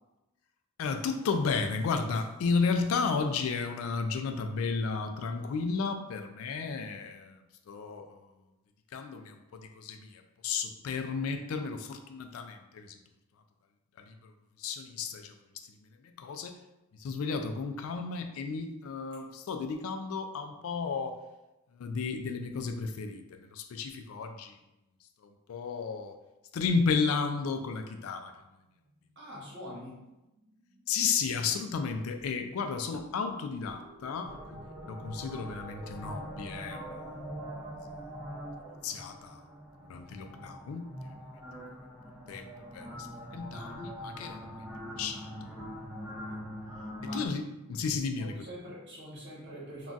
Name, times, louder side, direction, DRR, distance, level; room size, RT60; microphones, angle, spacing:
voice 1, 0.8-7.3 7.7-8.1 8.9-9.4 9.8-10.1 10.4-12.9 14.1-14.2 14.6-15.3 16.2-16.6 17.0-21.2 21.8-23.2 23.5-24.5 25.5-26.1 26.5-28.3 30.9-34.6 34.9-36.8 38.8-39.4 39.9-40.9 42.3-42.5 42.7-42.9 43.3-44.4 45.0-45.3 47.1-47.4 47.7-48.4, left 5 dB, 70° left, 7 dB, 0.3 m, -32 dB
sound 1, 28.4-39.0, right 1 dB, 85° right, 0.7 m, -52 dB
voice 2, 29.2-30.0 47.0-47.3 48.2-49.9, equal, 55° right, -5 dB, 1.1 m, -44 dB
sound 2, 34.2-47.3, equal, 10° right, 0.5 m, -43 dB
2.3 x 2.3 x 3.8 m, 0.97 s
head